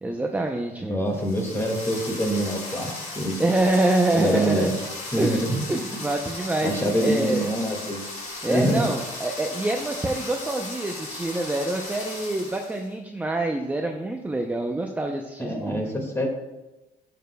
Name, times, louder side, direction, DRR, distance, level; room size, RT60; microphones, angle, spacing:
voice 1, 0.0-1.0 3.4-4.7 5.2-7.5 8.4-15.9, right 2 dB, 10° right, 2 dB, 0.6 m, -26 dB
voice 2, 0.9-3.4 4.1-4.7 5.1-5.6 5.9-6.0 6.6-8.0 8.5-8.8 15.4-16.3, equal, 15° left, 1 dB, 2.0 m, -25 dB
sound 1, 1.1-12.9, left 2 dB, 45° left, 2.5 m, -36 dB
12.0 x 6.8 x 2.3 m, 1.0 s
cardioid pair, 110°, 17 cm